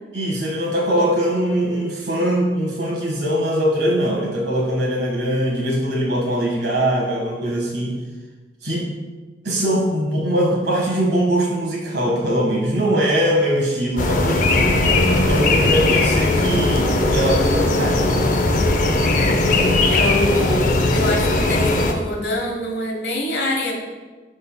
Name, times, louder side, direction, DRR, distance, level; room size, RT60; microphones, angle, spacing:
voice 1, 0.1-8.0 8.6-8.9 9.4-14.8 15.2-18.3, equal, 65° right, -2 dB, 1.5 m, -21 dB
sound 1, 14.0-21.9, left 2 dB, 50° left, 0.5 m, -18 dB
voice 2, 19.9-23.7, left 1 dB, 75° left, 1 dB, 1.1 m, -25 dB
11.0 x 3.9 x 2.2 m, 1.3 s
head